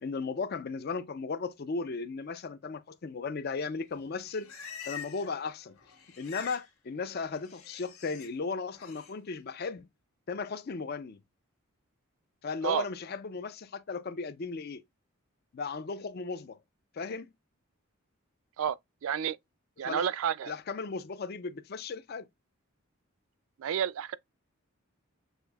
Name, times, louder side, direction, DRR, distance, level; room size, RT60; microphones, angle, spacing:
voice 1, 0.0-4.5 4.9-5.7 6.2-9.9 10.3-11.2 12.4-14.8 15.5-16.6 16.9-17.3 19.8-20.1 20.5-22.3, left 4 dB, 45° left, 0.4 m, -36 dB
Livestock farm animals working animals, 4.0-5.4 5.6-6.7 7.0-8.3 8.7-9.1, left 7 dB, 85° left, 1.6 m, -46 dB
voice 2, 19.0-19.4 19.8-20.5 23.6-24.1, right 8 dB, 70° right, 0.3 m, -30 dB
6.5 x 2.5 x 2.2 m
head